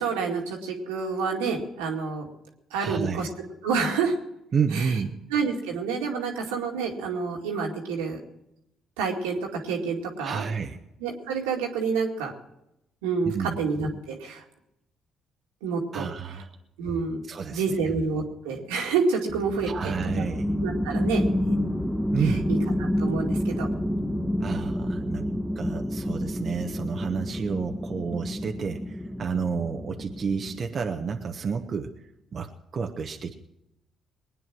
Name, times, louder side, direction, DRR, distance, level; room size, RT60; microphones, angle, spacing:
voice 1, 0.0-2.3 2.7-3.3 3.6-4.1 4.7-4.9 5.3-8.2 9.0-9.4 9.6-10.4 11.0-12.3 13.0-14.4 15.6-16.1 16.8-17.2 17.5-20.3 20.6-21.6 22.2-22.6 23.0-23.7, right 5 dB, 85° right, 0 dB, 2.2 m, -28 dB
voice 2, 2.8-3.2 4.5-5.2 10.2-10.8 13.2-13.5 15.9-16.5 17.3-17.7 19.6-20.5 22.1-22.5 24.4-25.3 25.5-32.0 32.3-33.3, right 6 dB, 50° right, 4 dB, 1.2 m, -30 dB
sound 1, 19.3-31.4, equal, 5° left, 1.4 m, -29 dB
20.5 x 9.3 x 6.1 m, 0.84 s
hypercardioid pair, 55°, 0 cm